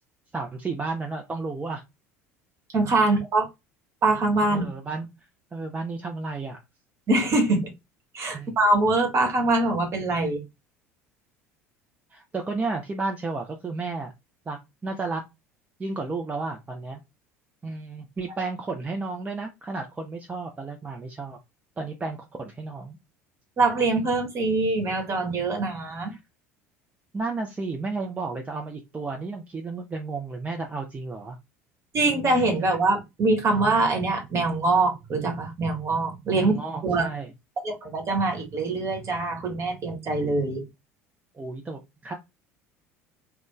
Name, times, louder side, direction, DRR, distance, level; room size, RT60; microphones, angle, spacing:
voice 1, 0.3-1.8 4.5-5.1 5.5-6.6 8.3-8.6 12.1-14.1 14.5-15.2 15.8-17.0 17.6-21.4 21.8-23.0 26.1-26.2 27.1-31.4 36.3-37.3 41.3-42.1, right 3 dB, 20° right, 0.6 m, -32 dB
voice 2, 2.7-3.5 4.0-4.7 7.1-7.7 8.1-10.4 23.6-26.1 31.9-36.6 36.8-37.1 37.6-40.6, right 2 dB, 35° right, 1.2 m, -23 dB
2.5 x 2.2 x 3.6 m
figure-of-eight pair, 65°, 8 cm